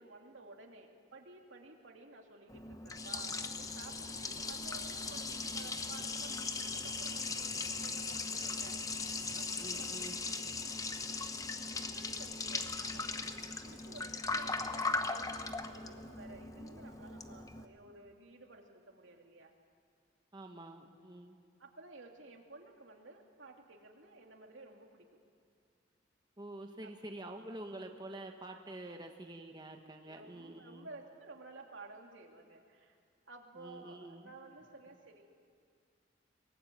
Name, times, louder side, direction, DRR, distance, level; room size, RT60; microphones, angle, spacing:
voice 1, 0.0-8.8 9.3-10.8 11.7-19.5 21.6-25.2 26.8-26.9 28.8-29.0 30.0-33.0 33.3-35.2, right 2 dB, 85° right, 2 dB, 2.9 m, -54 dB
Liquid, 2.5-17.7, left 3 dB, 20° left, 0.9 m, -39 dB
voice 2, 9.6-10.2 20.3-21.3 26.4-30.9 33.6-34.3, right 1 dB, 20° right, 4 dB, 1.3 m, -47 dB
22.5 x 20.5 x 9.3 m, 2.3 s
head